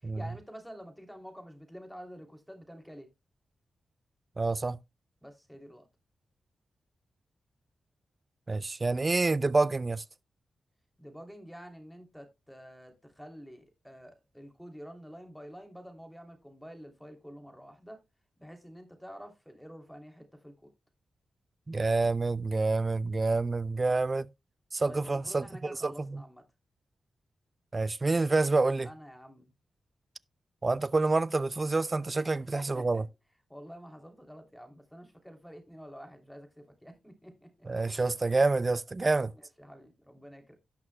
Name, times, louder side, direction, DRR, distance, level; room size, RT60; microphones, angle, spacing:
voice 1, 0.0-3.1 5.2-5.8 11.0-18.0 18.4-20.7 24.8-26.4 28.8-29.5 32.5-33.0 33.5-37.7 39.6-40.6, equal, ahead, 2.9 m, -48 dB
voice 2, 4.4-4.8 8.5-10.0 21.7-24.3 24.7-26.2 27.7-28.9 30.6-33.0 37.6-39.3, right 3 dB, 35° right, 0.4 m, -28 dB
17.0 x 5.9 x 2.2 m
cardioid pair, 70°, 0 cm